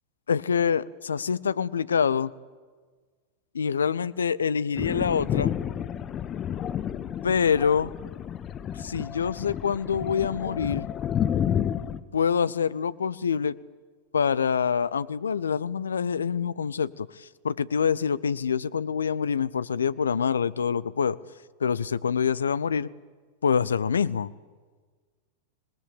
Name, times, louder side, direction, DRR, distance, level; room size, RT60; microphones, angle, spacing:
voice 1, 0.3-2.3 3.5-5.5 7.2-7.9 8.8-10.9 12.1-13.6 14.1-21.2 21.6-22.9 23.4-24.3, left 6 dB, 70° left, 18 dB, 0.7 m, -26 dB
Thunder, 4.8-12.0, left 9 dB, 30° left, 1.2 m, -30 dB
27.0 x 19.5 x 8.7 m, 1.5 s
figure-of-eight pair, 90°, 0 cm